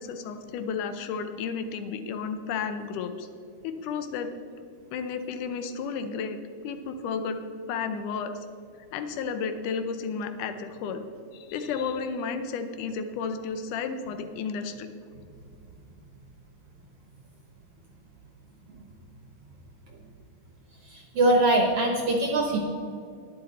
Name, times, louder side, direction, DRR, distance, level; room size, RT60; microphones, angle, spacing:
voice 1, 0.0-3.3 3.6-4.3 4.9-7.4 7.7-8.4 8.9-11.0 11.3-14.9, left 5 dB, 80° left, 8 dB, 2.3 m, -32 dB
voice 2, 20.9-22.6, right 1 dB, 65° right, 2 dB, 1.5 m, -22 dB
11.5 x 10.0 x 4.2 m, 2.5 s
omnidirectional pair, 3.6 m